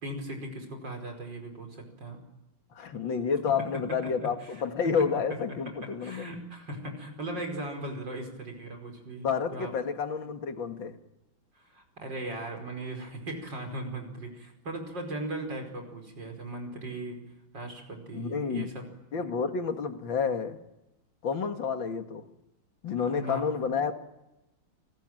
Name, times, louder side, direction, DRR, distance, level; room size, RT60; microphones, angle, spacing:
voice 1, 0.0-2.2 4.0-4.6 5.7-9.7 11.5-17.2 17.5-18.8 23.1-23.4, right 1 dB, 65° right, 4 dB, 5.8 m, -38 dB
voice 2, 2.7-6.3 9.2-10.9 18.1-18.7 19.1-20.6 21.2-22.2 22.8-23.9, left 6 dB, 75° left, 7 dB, 2.6 m, -30 dB
30.0 x 21.0 x 9.1 m, 0.94 s
omnidirectional pair, 2.1 m